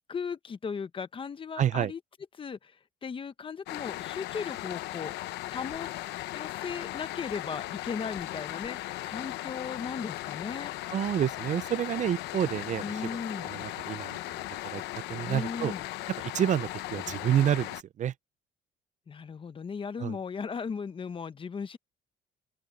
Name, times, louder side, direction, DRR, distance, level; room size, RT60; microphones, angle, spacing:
voice 1, 0.1-2.0 2.4-2.7 3.0-5.1 5.5-5.9 6.3-10.7 12.8-13.5 15.3-15.9 19.1-21.8, left 6 dB, 30° left, 1.1 m, -37 dB
voice 2, 1.6-1.9 10.9-13.0 13.3-14.8 15.1-15.7 16.2-18.1 20.0-20.2, right 10 dB, 45° right, 0.5 m, -29 dB
sound 1, 3.7-17.8, left 16 dB, 85° left, 1.0 m, -37 dB
open air
cardioid pair, 110°, 17 cm